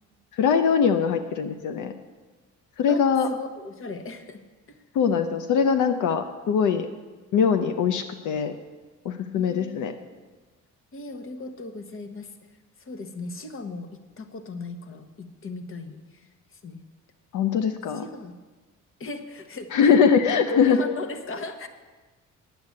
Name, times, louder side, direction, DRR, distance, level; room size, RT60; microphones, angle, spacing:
voice 1, 0.3-1.9 2.8-3.3 4.9-6.9 7.3-8.5 9.0-9.9 17.3-18.0 19.7-20.9, left 6 dB, 80° left, 8 dB, 0.7 m, -22 dB
voice 2, 2.9-4.4 4.7-4.8 9.3-9.9 10.9-12.3 12.8-13.9 14.2-16.8 17.9-18.4 19.0-20.0 20.3-21.7, left 3 dB, 45° left, 9 dB, 1.2 m, -37 dB
9.8 x 7.9 x 8.5 m, 1.3 s
cardioid pair, 90°, 30 cm